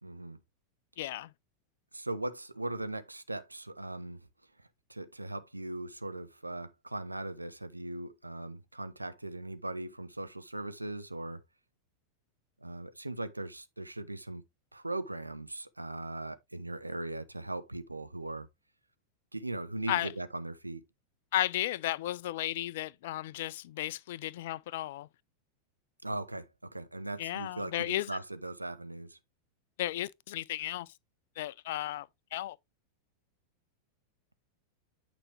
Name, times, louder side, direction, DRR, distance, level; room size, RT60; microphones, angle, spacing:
voice 1, 0.0-0.4 1.9-4.2 4.9-11.4 12.6-14.4 14.7-18.5 19.3-20.8 26.0-29.2, right 2 dB, 85° right, 0.7 m, -39 dB
voice 2, 1.0-1.3 19.9-20.1 21.3-25.1 27.2-28.1 29.8-30.9 31.4-32.6, left 14 dB, 55° left, 0.4 m, -34 dB
8.8 x 5.1 x 3.3 m
figure-of-eight pair, 90°, 0 cm